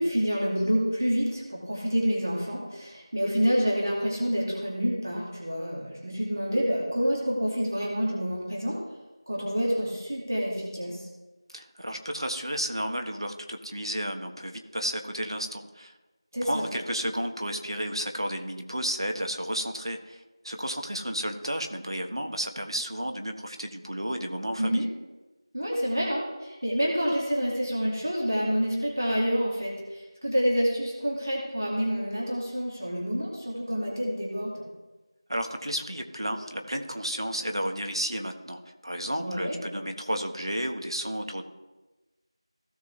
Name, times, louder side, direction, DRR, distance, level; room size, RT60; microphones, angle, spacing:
voice 1, 0.0-8.8 9.3-11.0 16.3-16.7 24.6-24.9 25.5-34.6 39.2-39.6, equal, 35° right, -3 dB, 2.2 m, -28 dB
voice 2, 11.5-15.9 16.4-24.8 35.3-41.4, equal, 60° right, 4 dB, 1.4 m, -32 dB
17.0 x 5.9 x 3.3 m, 1.1 s
figure-of-eight pair, 175°, 3 cm